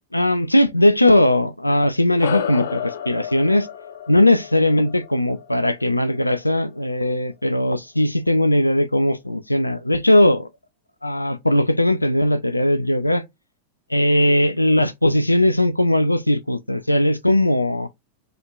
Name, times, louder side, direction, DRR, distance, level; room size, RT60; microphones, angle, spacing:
voice 1, 0.1-3.7 4.1-10.5 11.0-13.2 13.9-17.9, left 1 dB, 85° left, 0.3 m, -19 dB
sound 1, 2.2-6.9, left 9 dB, 60° left, 0.7 m, -32 dB
3.0 x 2.4 x 2.4 m
figure-of-eight pair, 90°, 0 cm